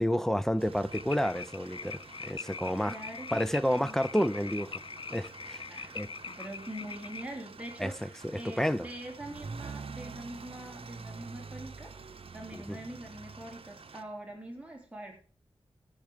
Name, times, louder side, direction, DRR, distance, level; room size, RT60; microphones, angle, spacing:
voice 1, 0.0-3.0 3.3-4.8 5.1-5.6 5.9-6.1 7.8-8.9 12.5-12.8, equal, 5° left, 0.6 m, -30 dB
sound 1, 0.6-14.0, right 4 dB, 70° right, 0.9 m, -47 dB
sound 2, 0.9-7.2, left 5 dB, 55° left, 0.5 m, -43 dB
voice 2, 2.9-4.0 5.7-11.9 12.3-15.2, right 1 dB, 10° right, 3.2 m, -44 dB
14.0 x 7.3 x 5.0 m
wide cardioid pair, 90°, 10 cm